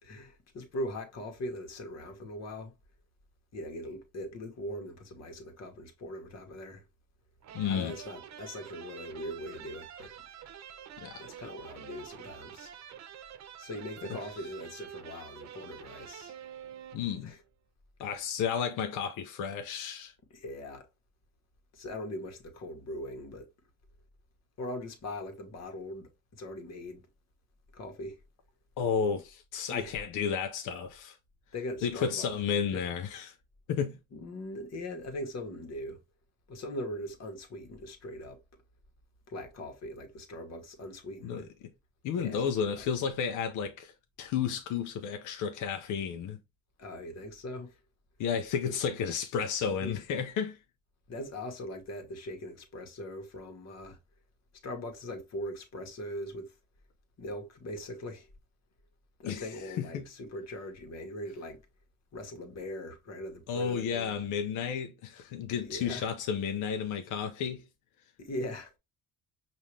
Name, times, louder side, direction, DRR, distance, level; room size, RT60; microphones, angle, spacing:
voice 1, 0.0-2.7 3.5-6.8 7.7-10.1 11.2-12.7 13.6-16.3 17.2-17.4 18.0-18.2 20.3-20.9 21.7-23.5 24.6-26.1 26.4-27.0 27.7-28.2 29.7-29.9 31.5-32.3 32.7-32.8 34.1-36.0 36.5-38.4 39.3-41.5 42.2-42.9 46.8-47.7 48.7-48.8 49.8-50.0 51.1-54.0 54.6-56.5 57.2-58.3 59.2-61.6 62.1-64.2 65.6-66.1 68.2-68.7, left 1 dB, 60° left, 1.4 m, -40 dB
sound 1, 7.4-17.4, right 9 dB, 65° right, 0.8 m, -48 dB
voice 2, 7.5-8.0 11.0-11.2 16.9-17.3 18.0-20.1 28.8-31.2 31.8-33.3 33.7-34.0 41.2-41.4 42.0-46.4 48.2-50.6 59.2-60.0 63.5-67.6, left 7 dB, 85° left, 0.6 m, -32 dB
5.5 x 2.6 x 3.2 m
cardioid pair, 90°, 30 cm